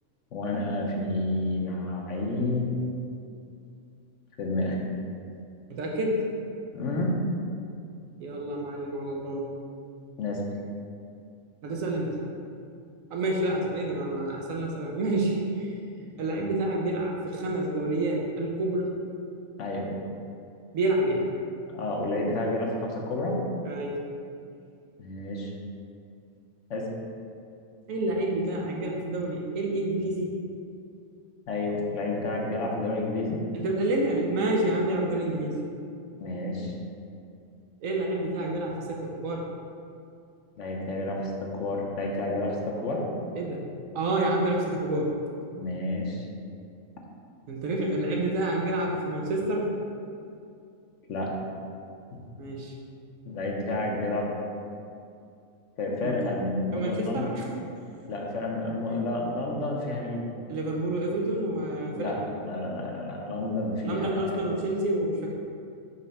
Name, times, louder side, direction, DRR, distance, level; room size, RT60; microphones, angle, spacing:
voice 1, 0.3-2.7 4.4-4.8 6.7-7.2 10.2-10.4 19.6-19.9 21.7-23.4 25.0-25.5 26.7-26.9 31.5-33.4 36.2-36.7 40.6-43.1 45.6-46.3 51.1-51.3 52.1-52.2 53.3-54.3 55.8-57.3 58.1-60.2 62.0-64.4, left 2 dB, 70° left, -1 dB, 1.1 m, -30 dB
voice 2, 5.7-6.2 8.2-9.5 11.6-12.2 13.1-18.9 20.7-21.2 23.6-24.0 27.9-30.3 33.5-35.6 37.8-39.5 43.3-45.1 47.5-49.7 52.4-52.7 56.0-56.1 56.7-57.5 60.5-62.1 63.8-65.3, right 1 dB, 85° right, -1 dB, 1.2 m, -28 dB
5.5 x 3.3 x 5.2 m, 2.4 s
omnidirectional pair, 1.4 m